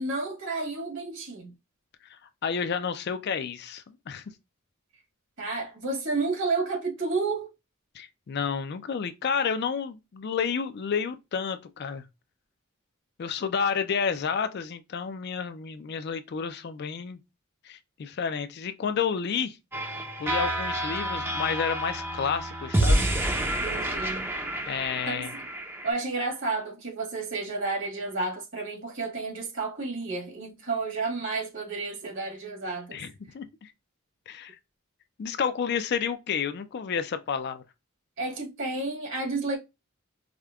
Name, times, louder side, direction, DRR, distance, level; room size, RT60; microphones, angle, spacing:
voice 1, 0.0-1.5 5.4-7.5 23.6-24.3 25.1-25.3 25.8-33.0 38.2-39.6, right 3 dB, 60° right, 1.6 m, -31 dB
voice 2, 2.1-4.2 7.9-12.0 13.2-17.2 17.6-19.6 20.2-23.1 24.7-25.3 32.9-33.7 34.3-34.6 35.2-37.6, left 6 dB, 50° left, 0.4 m, -30 dB
sound 1, 19.7-25.9, right 1 dB, 10° right, 0.5 m, -28 dB
4.9 x 2.2 x 2.3 m
head